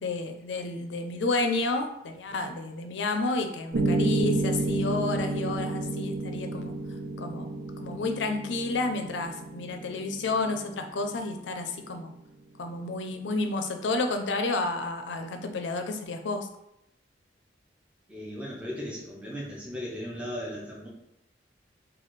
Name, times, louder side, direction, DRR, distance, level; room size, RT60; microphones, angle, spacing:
voice 1, 0.0-6.7 7.2-7.5 7.8-12.1 12.6-16.5, left 3 dB, 75° left, 6 dB, 0.5 m, -30 dB
Piano, 3.7-11.8, right 2 dB, 85° right, 0.5 m, -31 dB
voice 2, 18.1-20.9, equal, 5° right, -5 dB, 0.6 m, -37 dB
4.1 x 2.3 x 3.1 m, 0.83 s
head